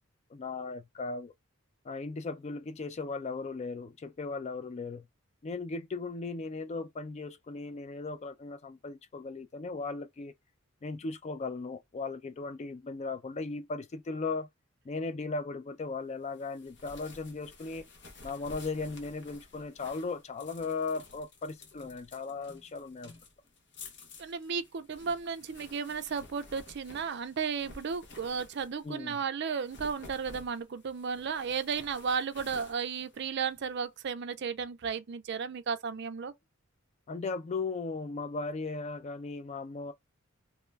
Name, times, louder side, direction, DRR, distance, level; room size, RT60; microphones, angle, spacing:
voice 1, 0.3-1.3 1.8-5.1 5.4-10.3 10.8-14.5 14.8-17.9 18.2-23.2 28.8-29.2 37.1-39.9, left 3 dB, 30° left, 0.3 m, -37 dB
sound 1, 16.3-29.0 29.5-33.8, left 3 dB, 55° left, 0.9 m, -52 dB
voice 2, 24.2-36.3, right 6 dB, 55° right, 0.4 m, -34 dB
3.0 x 2.2 x 3.2 m
head